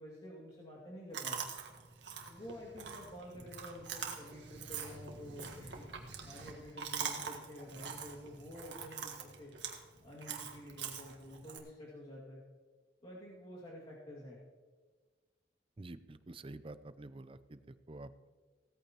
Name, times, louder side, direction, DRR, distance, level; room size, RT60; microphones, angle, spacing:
voice 1, 0.0-1.4 2.3-5.9 6.2-9.5 10.0-12.4 13.0-14.4, equal, 30° left, -7 dB, 2.3 m, -49 dB
Chewing mastication, 1.1-11.6, right 6 dB, 80° right, 1.6 m, -44 dB
voice 2, 15.8-17.6 17.9-18.1, right 2 dB, 30° right, 13 dB, 0.5 m, -48 dB
17.0 x 14.0 x 3.0 m, 1.5 s
head